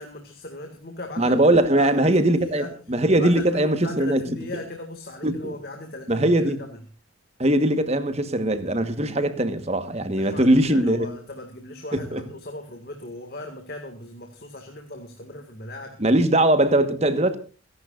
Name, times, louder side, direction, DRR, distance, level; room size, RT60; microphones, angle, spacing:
voice 1, 0.0-2.8 3.1-6.8 10.1-16.0, left 2 dB, 50° left, 2.1 m, -38 dB
voice 2, 1.2-4.2 5.2-5.5 6.1-6.6 7.4-11.1 11.9-12.2 16.0-17.4, right 1 dB, 30° right, 1.4 m, -21 dB
28.0 x 11.0 x 2.5 m
head